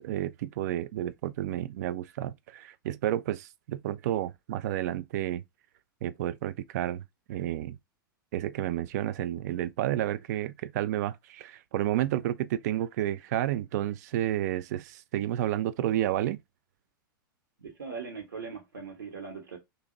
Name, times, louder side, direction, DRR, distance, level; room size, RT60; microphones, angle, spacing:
voice 1, 0.0-5.4 6.0-7.0 7.3-7.8 8.3-16.4, right 12 dB, 50° right, 0.4 m, -31 dB
voice 2, 17.6-19.6, right 5 dB, 70° right, 1.3 m, -40 dB
2.8 x 2.6 x 3.8 m
figure-of-eight pair, 95°, 12 cm